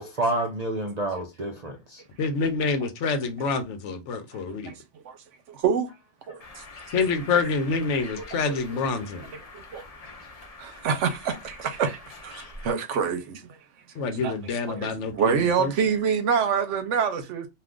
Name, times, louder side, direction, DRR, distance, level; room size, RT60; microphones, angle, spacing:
voice 1, 0.0-2.0, right 1 dB, 55° right, 0.4 m, -29 dB
voice 2, 2.2-4.7 6.9-9.3 14.0-15.7, left 4 dB, 80° left, 1.0 m, -27 dB
voice 3, 5.5-5.9 6.3-6.6 8.2-8.6 9.3-9.8 10.6-13.6 14.2-14.3 14.7-17.5, right 6 dB, 75° right, 1.0 m, -27 dB
Bird, 6.4-12.7, left 3 dB, 40° left, 0.6 m, -45 dB
2.5 x 2.4 x 3.5 m
omnidirectional pair, 1.2 m